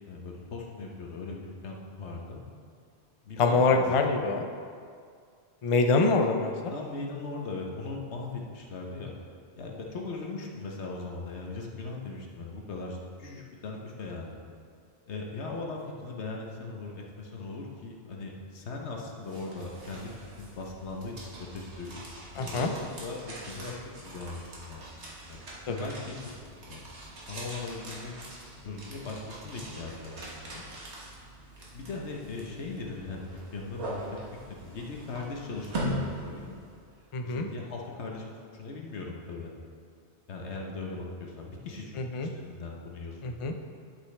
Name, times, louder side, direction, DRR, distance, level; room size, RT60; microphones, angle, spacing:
voice 1, 0.0-2.4 3.2-3.9 5.9-6.1 6.7-9.1 9.6-14.4 15.0-20.1 20.4-23.2 23.5-24.9 25.3-25.4 25.7-26.2 26.6-26.9 27.1-28.2 28.6-30.6 31.7-34.2 34.5-36.5 37.2-38.3 38.5-39.5 40.3-43.4, left 3 dB, 85° left, 0 dB, 1.3 m, -39 dB
voice 2, 3.4-4.5 5.6-6.7 22.4-22.7 25.7-25.9 37.1-37.5 42.0-42.3 43.2-43.5, left 3 dB, 40° left, 4 dB, 0.5 m, -25 dB
sound 1, 19.2-37.0, right 1 dB, 80° right, 1.7 m, -42 dB
11.5 x 6.1 x 3.3 m, 2.2 s
omnidirectional pair, 1.1 m